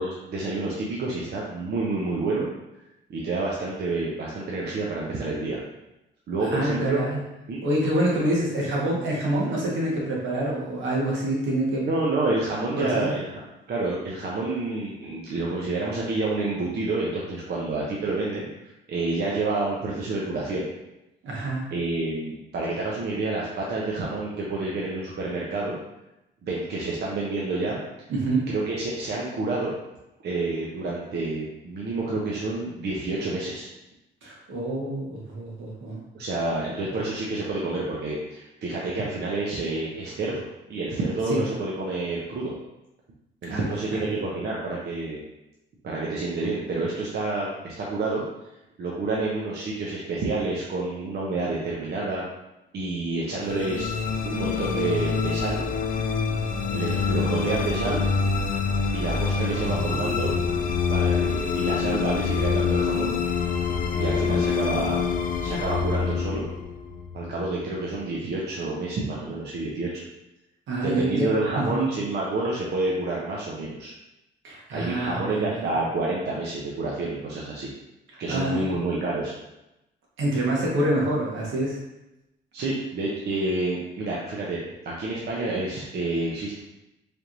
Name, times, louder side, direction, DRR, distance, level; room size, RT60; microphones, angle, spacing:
voice 1, 0.0-2.5 3.1-5.6 6.3-7.0 7.5-7.6 11.8-13.4 13.7-18.5 18.9-20.7 21.7-25.8 26.4-27.8 28.5-29.7 30.2-33.7 36.1-42.5 43.4-45.2 45.8-48.2 48.8-52.2 52.7-53.9 54.2-55.6 56.7-58.0 58.9-60.3 60.8-63.2 63.9-65.0 65.4-66.5 67.1-70.0 70.8-73.9 74.7-77.7 78.2-79.3 82.5-84.6 84.8-86.6, right 2 dB, 55° right, -4 dB, 0.7 m, -28 dB
voice 2, 6.4-7.2 7.6-11.8 12.8-13.1 21.2-21.6 28.1-28.4 34.2-36.0 41.3-41.4 43.5-44.2 59.5-60.2 70.7-71.3 71.5-71.9 74.4-75.7 78.3-78.6 80.2-81.8, right 1 dB, 75° right, -4 dB, 1.4 m, -27 dB
sound 1, 53.4-67.8, left 5 dB, 45° left, 0.4 m, -26 dB
4.3 x 3.4 x 2.6 m, 0.93 s
cardioid pair, 90°, 20 cm